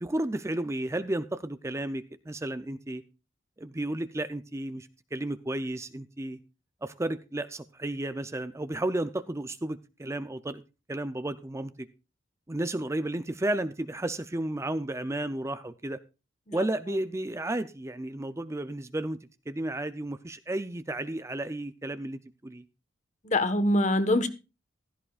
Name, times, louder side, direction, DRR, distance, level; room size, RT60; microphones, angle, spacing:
voice 1, 0.0-3.0 3.6-6.4 6.8-10.6 10.9-11.9 12.5-16.0 16.5-19.2 19.5-22.6, right 1 dB, 15° right, 0.5 m, -33 dB
voice 2, 23.2-24.3, left 1 dB, 40° left, 1.3 m, -24 dB
15.5 x 13.5 x 2.4 m
head